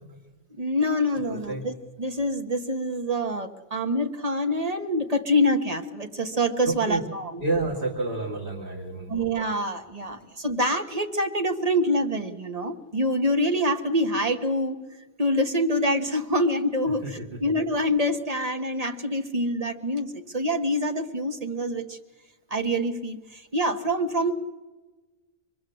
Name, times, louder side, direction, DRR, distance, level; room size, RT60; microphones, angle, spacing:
voice 1, 0.6-1.7 2.0-7.3 9.1-14.8 15.2-22.0 22.5-24.3, equal, 35° right, 6 dB, 1.5 m, -26 dB
voice 2, 1.3-1.7 6.6-7.0 7.4-9.2 16.8-17.5, right 2 dB, 60° right, -3 dB, 2.7 m, -30 dB
26.0 x 21.5 x 7.8 m, 1.2 s
omnidirectional pair, 1.1 m